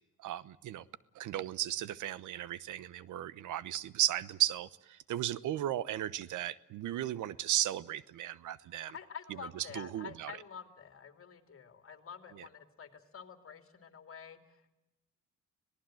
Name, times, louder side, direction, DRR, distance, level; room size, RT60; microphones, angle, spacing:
voice 1, 0.2-0.8 1.1-9.0 9.5-10.3 12.3-12.4, right 13 dB, 80° right, 19 dB, 1.0 m, -35 dB
voice 2, 8.9-14.7, left 7 dB, 45° left, 8 dB, 2.9 m, -48 dB
26.0 x 18.5 x 7.7 m, 0.97 s
cardioid pair, 90°, 30 cm